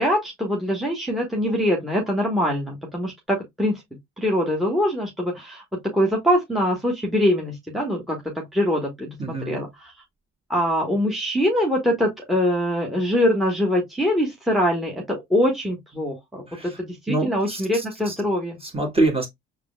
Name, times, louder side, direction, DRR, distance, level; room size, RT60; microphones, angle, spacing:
voice 1, 0.0-3.8 4.2-9.9 10.5-18.6, equal, ahead, 1.2 m, -23 dB
voice 2, 9.2-9.6 16.5-16.7 17.1-18.1 18.6-19.3, right 2 dB, 15° right, 1.6 m, -25 dB
6.6 x 2.3 x 2.3 m
figure-of-eight pair, 45°, 34 cm